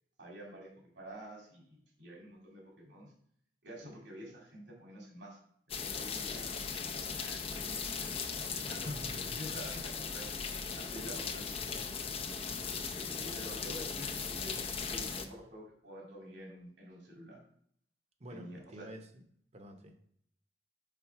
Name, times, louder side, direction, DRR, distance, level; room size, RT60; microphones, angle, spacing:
voice 1, 0.2-3.1 3.6-5.4 5.8-6.5 7.1-11.6 12.5-14.6 14.9-17.4 18.3-18.9, equal, 90° right, -2 dB, 2.3 m, -48 dB
sound 1, 5.7-15.2, left 5 dB, 35° left, 0.5 m, -38 dB
voice 2, 8.7-9.4 11.1-11.3 11.6-12.0 18.2-19.2 19.5-20.0, right 1 dB, 40° right, 5 dB, 0.8 m, -49 dB
5.8 x 3.8 x 4.6 m, 0.64 s
head